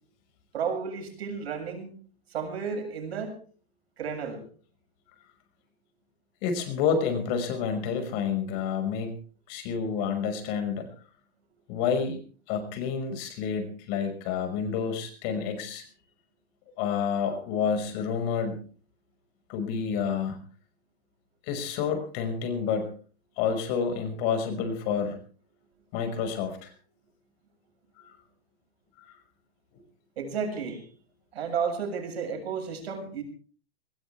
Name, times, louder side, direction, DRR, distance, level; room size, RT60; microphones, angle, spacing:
voice 1, 0.5-1.9 2.3-3.4 4.0-4.5 28.0-28.1 30.2-30.9 31.3-33.2, right 6 dB, 85° right, 3 dB, 7.1 m, -32 dB
voice 2, 6.4-9.1 9.5-10.9 11.7-12.2 12.5-15.8 16.8-18.6 19.5-20.4 21.5-22.9 23.4-25.2 25.9-26.7, left 6 dB, 45° left, 7 dB, 5.5 m, -29 dB
21.0 x 19.5 x 3.5 m, 0.42 s
supercardioid pair, 150°, 31 cm